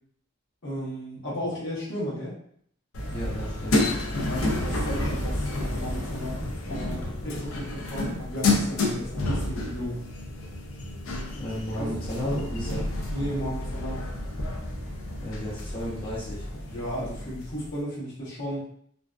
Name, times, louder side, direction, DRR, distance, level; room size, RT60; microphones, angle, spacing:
voice 1, 0.6-2.3 4.2-10.0 11.7-11.9 13.1-14.1 16.6-18.7, equal, 60° left, -6 dB, 1.0 m, -34 dB
sound 1, 2.9-17.7, left 2 dB, 75° left, 0.5 m, -30 dB
voice 2, 3.1-3.9 11.3-12.9 15.2-16.5, equal, 25° left, -8 dB, 0.6 m, -34 dB
2.5 x 2.1 x 2.3 m, 0.65 s
head